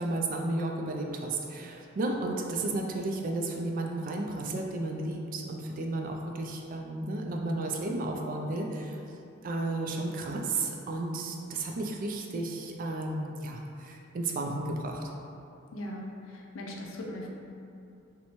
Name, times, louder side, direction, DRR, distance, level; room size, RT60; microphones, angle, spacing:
voice 1, 0.0-9.0 9.4-15.0, right 2 dB, 45° right, 1 dB, 0.3 m, -33 dB
voice 2, 15.7-17.3, left 1 dB, 80° left, -1 dB, 0.5 m, -39 dB
4.1 x 2.2 x 2.9 m, 2.6 s
head